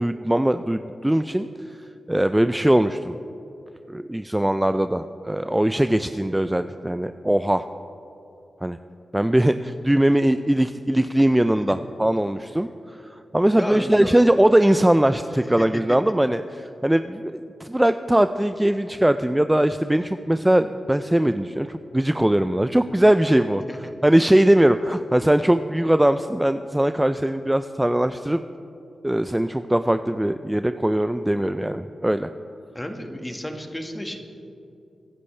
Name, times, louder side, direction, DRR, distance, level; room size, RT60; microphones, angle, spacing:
voice 1, 0.0-3.2 3.9-7.7 8.6-8.8 9.1-23.6 24.0-28.4 29.0-32.3, right 1 dB, 10° right, 10 dB, 0.4 m, -21 dB
voice 2, 13.5-14.2 15.6-15.8 23.7-23.9 32.7-34.2, equal, 15° left, 4 dB, 1.7 m, -32 dB
23.5 x 11.0 x 3.3 m, 2.8 s
cardioid pair, 55°, 0 cm